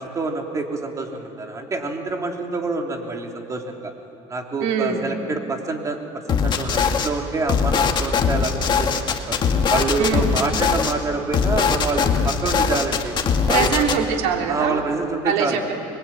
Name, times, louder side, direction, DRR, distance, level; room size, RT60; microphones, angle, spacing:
voice 1, 0.0-3.9 4.3-6.0 6.3-9.4 9.7-13.1 13.5-13.9 14.5-15.6, right 3 dB, 25° right, 2 dB, 3.3 m, -27 dB
voice 2, 4.6-5.0 10.0-10.3 13.5-14.8 15.2-15.7, right 7 dB, 80° right, 2 dB, 3.4 m, -23 dB
sound 1, 6.3-7.1 7.5-10.9 11.3-14.0, left 6 dB, 35° left, 2.0 m, -21 dB
26.0 x 22.0 x 9.0 m, 2.8 s
cardioid pair, 125°, 13 cm